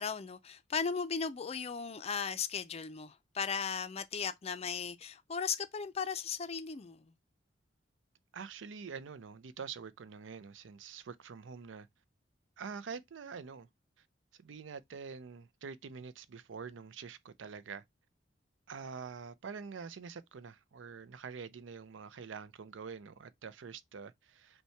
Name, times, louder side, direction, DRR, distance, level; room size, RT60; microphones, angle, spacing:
voice 1, 0.0-7.1, left 6 dB, 35° left, 0.4 m, -37 dB
voice 2, 8.3-11.9 12.6-13.7 14.4-17.8 18.7-24.6, right 5 dB, 80° right, 0.5 m, -46 dB
5.5 x 2.2 x 4.4 m
head